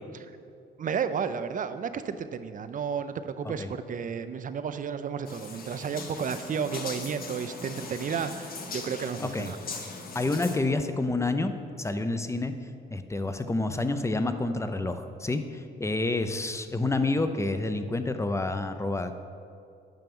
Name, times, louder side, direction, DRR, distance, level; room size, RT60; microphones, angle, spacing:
voice 1, 0.8-9.6, right 6 dB, 40° right, 11 dB, 0.5 m, -32 dB
sound 1, 5.3-10.6, left 4 dB, 50° left, 1.1 m, -40 dB
voice 2, 10.1-11.5 11.8-12.5 12.9-19.2, left 2 dB, 15° left, 9 dB, 0.6 m, -28 dB
9.1 x 5.7 x 5.4 m, 2.4 s
cardioid pair, 90°, 20 cm